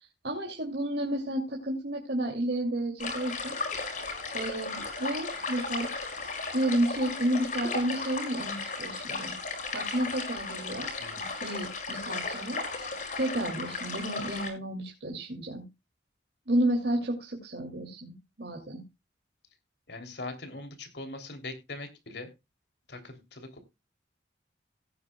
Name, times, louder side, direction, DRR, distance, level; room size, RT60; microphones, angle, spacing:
voice 1, 0.2-3.6 4.3-5.9 6.2-9.3 9.7-10.9 11.2-12.9 13.2-15.6 16.5-18.8, right 1 dB, 60° right, -1 dB, 2.8 m, -31 dB
sound 1, 3.0-14.5, left 3 dB, 45° left, 4.9 m, -35 dB
voice 2, 11.0-11.4 19.9-22.3 22.9-23.6, left 2 dB, 65° left, 7 dB, 3.2 m, -41 dB
17.5 x 9.4 x 2.3 m, 0.25 s
head